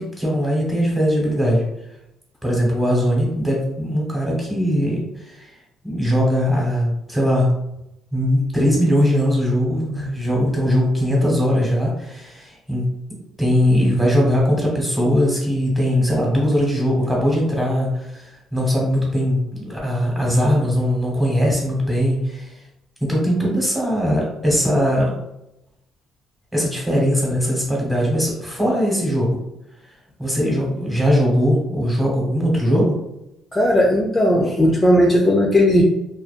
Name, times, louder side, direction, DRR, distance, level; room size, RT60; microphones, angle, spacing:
voice 1, 0.0-1.6 2.4-5.5 5.8-7.5 8.1-12.8 13.4-22.5 23.0-25.1 26.5-29.4 30.2-33.0, equal, 10° right, -3 dB, 1.1 m, -20 dB
voice 2, 33.5-35.8, left 1 dB, 15° left, -3 dB, 0.4 m, -16 dB
2.5 x 2.2 x 2.4 m, 0.85 s
cardioid pair, 100°, 0 cm